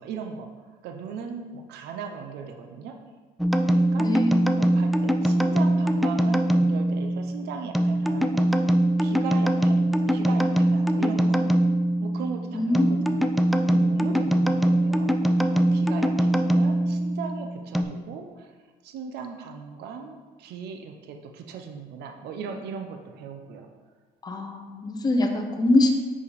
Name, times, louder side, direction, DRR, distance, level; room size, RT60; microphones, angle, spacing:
voice 1, 0.0-3.0 3.7-4.1 4.5-8.5 9.0-11.4 12.0-13.3 13.7-18.6 18.8-23.7, right 6 dB, 75° right, 4 dB, 0.7 m, -38 dB
sound 1, 3.4-17.8, right 1 dB, ahead, 0.3 m, -22 dB
voice 2, 4.0-4.6 12.5-13.1 24.2-25.9, left 1 dB, 25° left, 3 dB, 0.8 m, -24 dB
5.6 x 5.1 x 4.0 m, 1.4 s
cardioid pair, 110°, 17 cm